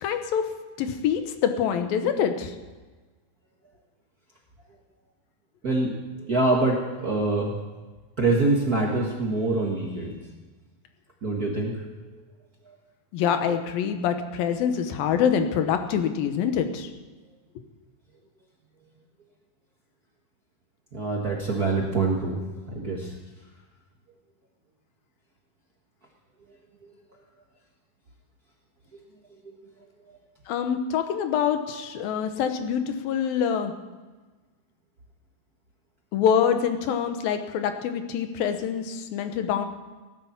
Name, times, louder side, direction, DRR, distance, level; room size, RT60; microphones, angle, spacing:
voice 1, 0.0-0.4 0.8-2.5 13.1-16.9 30.5-33.7 36.1-39.7, left 8 dB, 75° left, 8 dB, 2.7 m, -25 dB
voice 2, 5.6-7.5 8.2-10.2 11.2-11.9 20.9-23.1, right 2 dB, 75° right, -1 dB, 0.8 m, -25 dB
17.5 x 10.0 x 7.4 m, 1.3 s
omnidirectional pair, 4.4 m